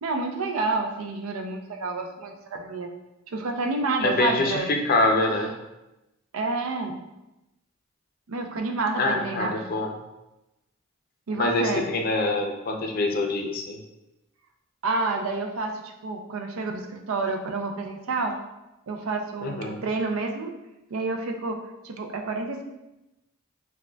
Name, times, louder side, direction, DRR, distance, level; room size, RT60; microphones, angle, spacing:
voice 1, 0.0-2.9 3.3-4.7 6.3-7.0 8.3-9.6 11.3-11.9 14.8-18.4 18.9-20.5 20.9-22.6, right 3 dB, 80° right, 4 dB, 0.5 m, -29 dB
voice 2, 4.0-5.5 9.0-9.9 11.4-13.8 19.4-19.8, left 2 dB, 45° left, 2 dB, 0.5 m, -25 dB
6.0 x 2.2 x 2.2 m, 0.97 s
head